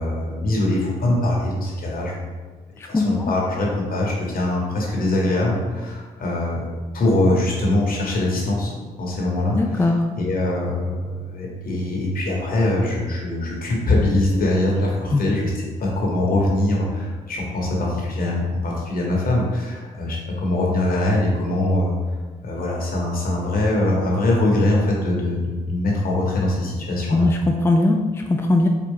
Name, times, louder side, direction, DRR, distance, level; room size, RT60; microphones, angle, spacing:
voice 1, 0.0-2.3 2.8-9.9 10.2-15.5 15.8-22.0 22.4-27.3, left 1 dB, 55° left, -2 dB, 1.3 m, -22 dB
voice 2, 2.8-3.3 9.5-10.1 15.1-15.2 27.1-28.7, left 2 dB, 15° left, 2 dB, 0.4 m, -20 dB
4.3 x 2.4 x 3.7 m, 1.4 s
supercardioid pair, 50°, 18 cm